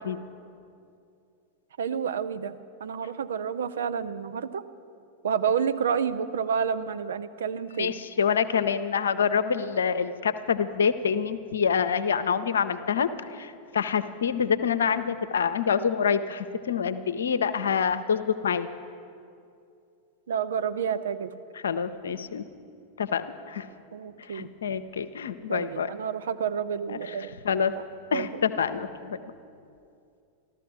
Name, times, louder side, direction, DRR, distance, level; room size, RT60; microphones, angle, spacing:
voice 1, 1.8-2.5 2.8-4.6 5.2-8.0 20.3-21.3 23.9-24.5 25.5-27.4 27.7-27.8 28.1-28.3, right 7 dB, 65° right, 11 dB, 0.5 m, -29 dB
voice 2, 7.8-18.7 21.6-22.4 23.0-23.7 24.3-25.9 26.9-27.0 27.4-27.7 28.1-29.2, left 6 dB, 65° left, 12 dB, 0.5 m, -26 dB
14.0 x 13.0 x 6.1 m, 2.5 s
figure-of-eight pair, 90°, 0 cm